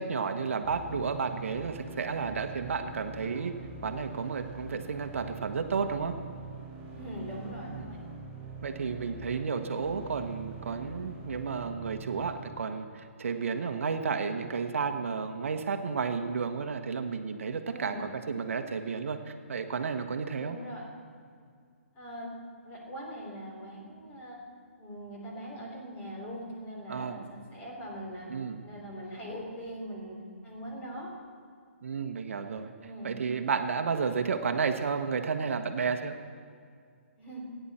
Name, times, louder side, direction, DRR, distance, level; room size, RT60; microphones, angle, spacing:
voice 1, 0.0-3.5 3.8-6.1 7.7-8.0 8.6-20.6 26.9-27.2 28.3-28.6 31.8-32.7 33.0-36.1, right 5 dB, 65° right, 7 dB, 1.1 m, -32 dB
sound 1, 0.6-12.6, right 3 dB, 20° right, 4.7 m, -44 dB
voice 2, 6.9-8.0 17.7-18.1 20.4-20.9 21.9-22.3 22.6-24.4 24.8-28.3 28.6-30.2 30.4-31.1 32.8-33.1 37.2-37.4, equal, 20° left, -3 dB, 3.6 m, -41 dB
28.0 x 10.5 x 4.3 m, 2.2 s
hypercardioid pair, 155°, 8 cm